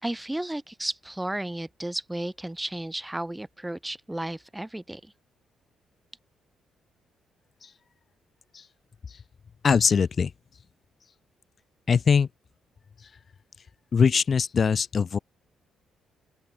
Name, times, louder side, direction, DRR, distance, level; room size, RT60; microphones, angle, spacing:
voice 1, 0.0-5.1, right 1 dB, 10° right, 2.1 m, -33 dB
voice 2, 9.6-10.3 11.9-12.3 13.0-13.1 13.9-15.2, left 6 dB, 45° left, 1.0 m, -22 dB
open air
cardioid pair, 90°, 0 cm